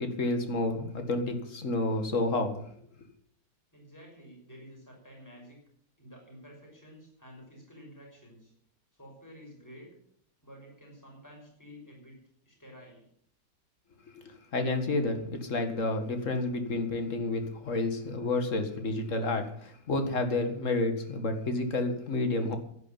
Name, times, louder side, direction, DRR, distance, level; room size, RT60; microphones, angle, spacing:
voice 1, 0.0-2.6 14.5-22.6, left 2 dB, 45° left, 7 dB, 2.2 m, -30 dB
voice 2, 3.7-5.6 6.0-8.5 8.9-9.9 10.4-12.2 12.4-13.1, equal, 10° left, -1 dB, 6.1 m, -51 dB
11.0 x 11.0 x 8.9 m, 0.67 s
omnidirectional pair, 2.0 m